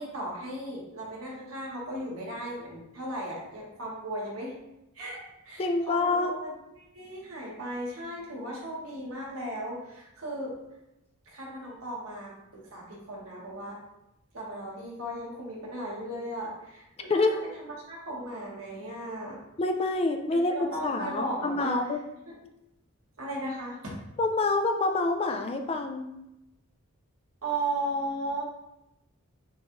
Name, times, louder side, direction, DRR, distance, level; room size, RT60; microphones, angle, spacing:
voice 1, 0.0-4.5 4.9-5.2 5.4-6.5 6.8-10.5 11.2-13.8 14.3-19.4 20.3-21.8 22.3-22.4 23.2-23.9 27.4-28.4, right 1 dB, 75° right, -3 dB, 1.4 m, -36 dB
voice 2, 5.6-6.3 17.1-17.4 19.6-20.5 20.8-22.0 24.2-26.1, left 3 dB, 25° left, 5 dB, 0.3 m, -27 dB
6.2 x 2.4 x 3.1 m, 0.89 s
head